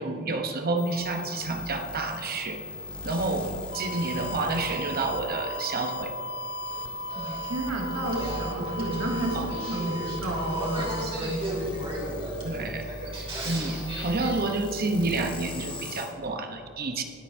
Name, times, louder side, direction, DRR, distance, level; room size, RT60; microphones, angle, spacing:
voice 1, 0.0-2.6 3.0-6.1 9.3-9.5 10.8-10.9 12.4-12.9 13.4-17.0, right 2 dB, 45° right, 5 dB, 1.0 m, -29 dB
sound 1, 0.8-16.1, left 2 dB, 25° left, 1.8 m, -39 dB
sound 2, 3.7-11.1, right 1 dB, 60° left, 0.6 m, -37 dB
Male speech man speaking / Female speech woman speaking / Conversation, 6.7-14.3, right 1 dB, 25° right, 2.8 m, -37 dB
voice 2, 7.2-11.8, right 1 dB, 80° right, -2 dB, 2.3 m, -31 dB
22.0 x 8.1 x 2.8 m, 2.8 s
head